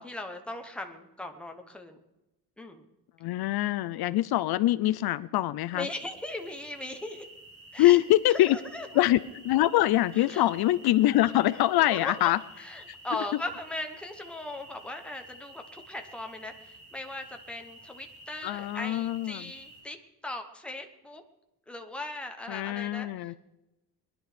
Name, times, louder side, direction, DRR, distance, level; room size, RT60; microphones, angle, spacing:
voice 1, 0.0-2.0 2.6-2.8 5.7-7.3 7.7-8.0 8.3-8.9 10.1-10.5 11.9-12.3 12.6-20.0 20.2-21.2 21.7-23.4, left 2 dB, 5° left, 4 dB, 1.0 m, -38 dB
voice 2, 3.2-5.9 7.8-8.6 8.9-12.4 12.9-13.0 18.4-19.5 22.5-23.3, left 15 dB, 70° left, 15 dB, 0.6 m, -24 dB
sound 1, 5.8-19.8, right 1 dB, 35° right, 5.0 m, -51 dB
21.0 x 11.0 x 5.1 m, 0.98 s
cardioid pair, 180°, 39 cm